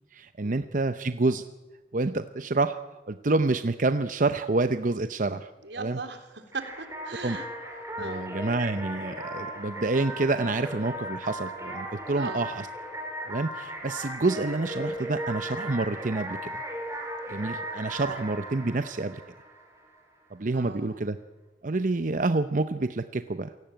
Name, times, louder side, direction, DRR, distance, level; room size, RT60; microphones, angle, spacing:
voice 1, 0.1-1.5 1.9-2.8 3.1-5.5 5.8-6.0 7.2-7.4 8.0-12.7 13.3-16.6 17.3-19.2 20.3-21.2 21.6-23.5, right 3 dB, 45° right, 10 dB, 0.7 m, -28 dB
voice 2, 5.6-7.5 8.0-8.3 12.1-12.5 18.1-18.2 20.5-21.0, right 3 dB, 80° right, 7 dB, 3.3 m, -38 dB
sound 1, 6.5-20.0, equal, 15° right, 5.4 m, -37 dB
28.0 x 17.5 x 9.0 m, 1.2 s
head